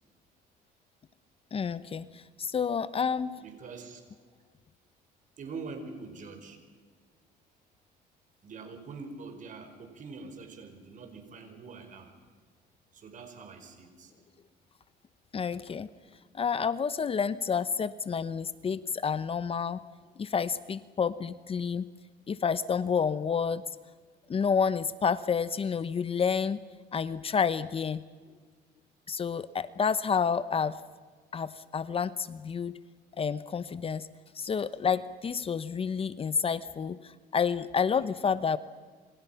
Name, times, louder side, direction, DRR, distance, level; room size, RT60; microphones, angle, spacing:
voice 1, 1.5-3.4 15.3-15.9 16.3-19.8 20.2-21.9 22.3-23.6 24.3-26.6 26.9-28.0 29.1-30.8 31.3-32.8 33.2-34.1 34.3-38.6, left 6 dB, 35° left, 15 dB, 0.9 m, -29 dB
voice 2, 3.4-4.0 5.4-6.6 8.4-12.2 12.9-14.1, right 4 dB, 50° right, 6 dB, 5.3 m, -44 dB
28.0 x 26.5 x 5.8 m, 1.5 s
cardioid pair, 110°, 17 cm